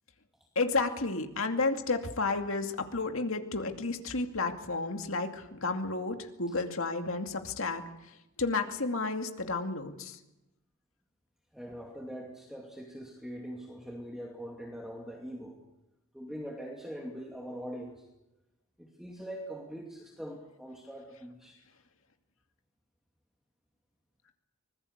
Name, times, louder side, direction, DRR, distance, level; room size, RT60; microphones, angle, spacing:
voice 1, 0.6-7.8 8.4-10.2, left 3 dB, 65° left, 5 dB, 2.4 m, -31 dB
voice 2, 11.5-15.6 16.1-18.1 18.8-21.6, equal, ahead, 0 dB, 2.5 m, -42 dB
25.0 x 20.5 x 8.1 m, 0.94 s
head